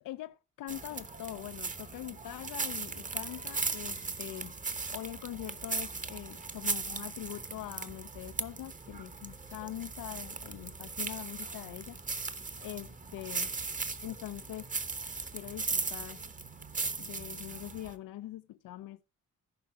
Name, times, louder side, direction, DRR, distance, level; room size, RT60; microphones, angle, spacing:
voice 1, 0.0-4.5 4.9-13.5 14.0-14.7 15.3-16.2 17.0-19.0, left 14 dB, 80° left, 0.6 m, -43 dB
sound 1, 0.7-17.9, right 4 dB, 25° right, 1.0 m, -38 dB
14.5 x 5.8 x 4.6 m
cardioid pair, 120°, 32 cm